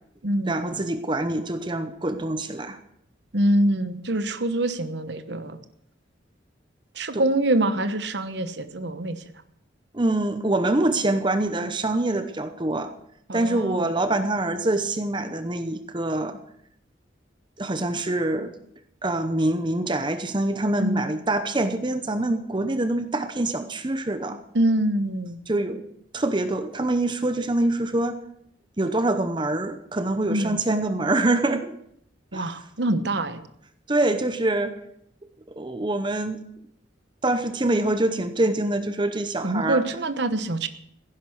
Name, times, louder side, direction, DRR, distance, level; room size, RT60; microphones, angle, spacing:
voice 1, 0.5-2.8 7.1-7.2 9.9-12.9 13.3-16.4 17.6-18.5 19.0-24.4 25.5-25.8 26.1-28.2 28.8-31.7 32.3-32.5 33.9-34.7 35.6-36.4 37.2-39.8, right 2 dB, 25° right, 9 dB, 0.8 m, -25 dB
voice 2, 3.3-5.6 7.0-9.2 13.3-13.9 20.8-21.1 24.5-25.4 30.3-30.6 32.3-33.4 39.4-40.7, right 1 dB, 60° right, 10 dB, 1.1 m, -25 dB
16.0 x 10.5 x 6.4 m, 0.74 s
head